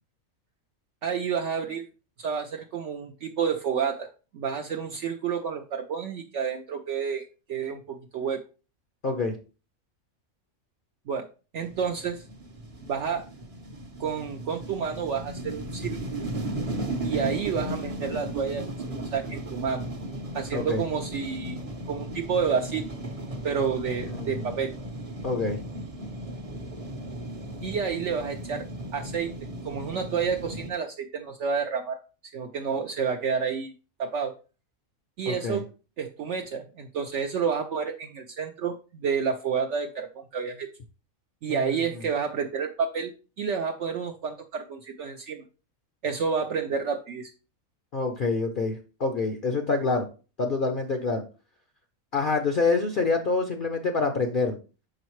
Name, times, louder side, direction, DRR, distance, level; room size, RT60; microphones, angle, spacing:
voice 1, 1.0-1.8 2.2-7.2 7.5-8.4 11.1-11.3 11.5-12.2 12.9-13.2 14.0-16.2 17.0-19.9 20.3-22.8 23.4-24.8 27.6-28.7 28.9-32.0 32.2-33.7 34.0-34.3 35.2-35.7 36.0-40.7 41.4-43.1 43.4-45.4 46.0-47.3, right 6 dB, 65° right, 3 dB, 0.8 m, -30 dB
voice 2, 9.0-9.3 20.5-20.8 24.1-24.5 25.2-25.6 35.3-35.6 41.5-41.7 47.9-50.1 50.4-51.2 52.1-54.6, left 3 dB, 50° left, 4 dB, 0.6 m, -26 dB
sound 1, 11.6-30.7, right 1 dB, 30° right, 0.7 m, -36 dB
6.2 x 4.9 x 3.1 m, 0.34 s
omnidirectional pair, 1.4 m